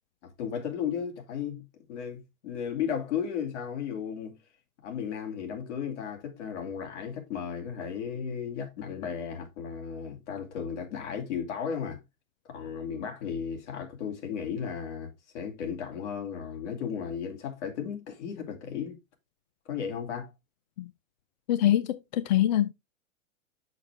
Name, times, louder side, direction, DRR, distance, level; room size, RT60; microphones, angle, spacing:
voice 1, 0.2-4.4 4.8-12.0 12.5-19.0 19.7-20.3, left 7 dB, 55° left, 2.7 m, -35 dB
voice 2, 21.5-22.7, left 12 dB, 35° left, 0.4 m, -24 dB
6.4 x 6.3 x 3.4 m
hypercardioid pair, 115°, 41 cm